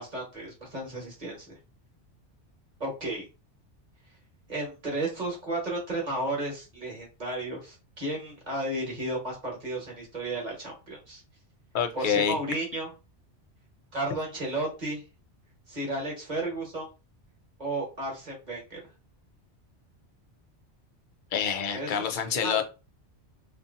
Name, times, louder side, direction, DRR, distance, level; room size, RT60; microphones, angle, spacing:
voice 1, 0.0-1.5 2.8-3.3 4.5-11.2 11.9-12.9 13.9-15.0 15.7-16.9 17.6-18.8 21.7-22.6, right 1 dB, 40° right, -2 dB, 1.1 m, -33 dB
voice 2, 11.7-12.4 21.3-22.6, left 7 dB, 55° left, 5 dB, 0.6 m, -27 dB
2.6 x 2.5 x 2.5 m, 0.30 s
omnidirectional pair, 1.2 m